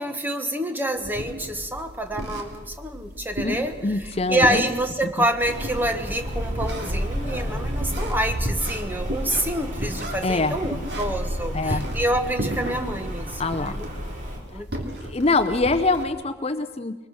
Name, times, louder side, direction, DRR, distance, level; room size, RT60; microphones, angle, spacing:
voice 1, 0.0-3.7 4.3-13.9 14.5-14.7, right 1 dB, 10° right, 6 dB, 1.3 m, -27 dB
sound 1, 1.0-16.0, equal, 60° right, 2.8 m, -35 dB
voice 2, 3.8-4.7 10.2-10.6 11.5-11.8 13.4-13.8 14.5-17.0, left 3 dB, 30° left, 10 dB, 0.7 m, -24 dB
Rain, 5.4-14.4, equal, 40° right, 3.8 m, -31 dB
23.0 x 20.5 x 6.4 m, 1.2 s
head